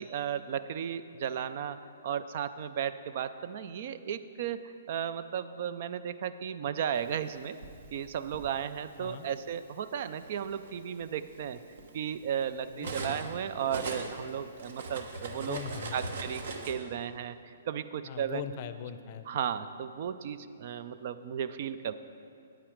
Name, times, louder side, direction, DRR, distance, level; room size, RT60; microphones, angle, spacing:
voice 1, 0.0-7.6 7.9-11.6 11.9-15.6 15.9-18.4 19.3-21.9, right 8 dB, 50° right, 13 dB, 0.4 m, -35 dB
Cutlery silverware, 7.2-8.5 9.5-9.6 10.1-13.3 13.6-16.7, right 3 dB, 70° right, 1.2 m, -40 dB
voice 2, 12.7-13.3 15.4-16.0 18.1-19.3, left 9 dB, 45° left, 11 dB, 0.5 m, -40 dB
8.9 x 8.9 x 4.9 m, 2.4 s
hypercardioid pair, 140°, 0 cm